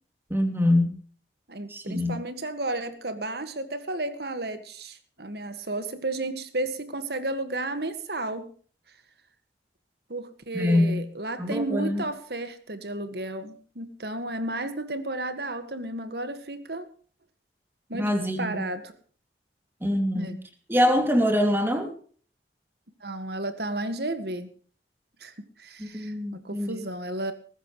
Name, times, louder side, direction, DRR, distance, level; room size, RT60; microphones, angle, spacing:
voice 1, 0.3-0.9 1.7-2.2 10.5-11.0 11.4-12.0 17.9-18.6 19.8-20.4 20.7-21.9 25.8-26.8, left 1 dB, 10° right, 5 dB, 2.7 m, -24 dB
voice 2, 1.5-8.5 10.1-16.9 17.9-18.1 18.4-18.9 20.1-20.4 23.0-24.5 25.2-25.3 25.6-27.3, right 2 dB, 60° right, 10 dB, 1.9 m, -33 dB
19.5 x 15.0 x 3.2 m, 0.43 s
head